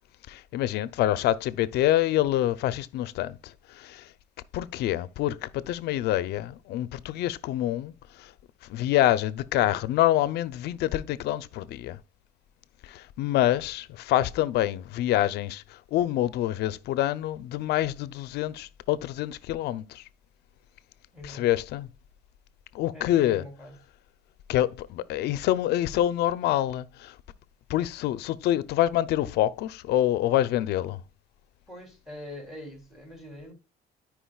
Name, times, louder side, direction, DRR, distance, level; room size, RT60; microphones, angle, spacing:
voice 1, 0.3-4.1 4.5-7.9 8.2-8.3 8.7-12.0 12.8-20.0 21.3-21.9 22.7-23.4 24.5-27.2 27.7-31.0, left 13 dB, 80° left, 0.6 m, -26 dB
voice 2, 21.1-21.5 22.9-23.7 31.7-33.5, left 1 dB, ahead, 3.1 m, -43 dB
13.5 x 5.0 x 2.3 m
cardioid pair, 110°, 17 cm